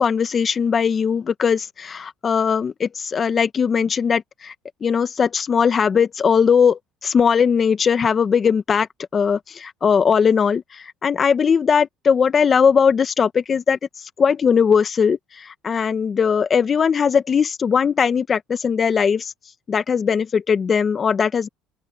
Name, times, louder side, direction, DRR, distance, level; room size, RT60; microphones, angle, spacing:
voice 1, 0.0-4.5 4.8-8.9 9.1-10.6 11.0-13.8 14.2-19.3 19.7-21.5, left 6 dB, 35° left, 1.5 m, -19 dB
open air
supercardioid pair, 90°, 0 cm